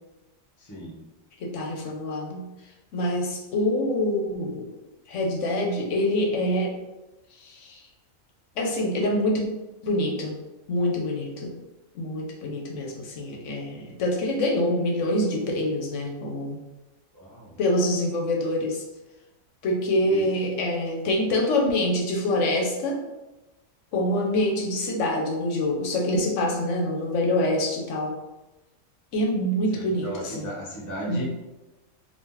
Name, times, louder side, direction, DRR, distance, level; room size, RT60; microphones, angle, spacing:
voice 1, 0.6-1.0 17.1-17.6 20.1-20.3 29.7-31.2, right 1 dB, 20° left, -5 dB, 0.6 m, -36 dB
voice 2, 1.4-2.5 2.9-4.7 5.1-6.8 7.4-7.8 8.6-9.4 9.8-10.3 10.7-11.5 11.9-16.6 17.6-18.8 19.6-23.0 23.9-28.1 29.1-30.5 31.1-31.2, left 1 dB, 70° left, 0 dB, 0.9 m, -25 dB
2.8 x 2.5 x 3.7 m, 1.0 s
omnidirectional pair, 1.4 m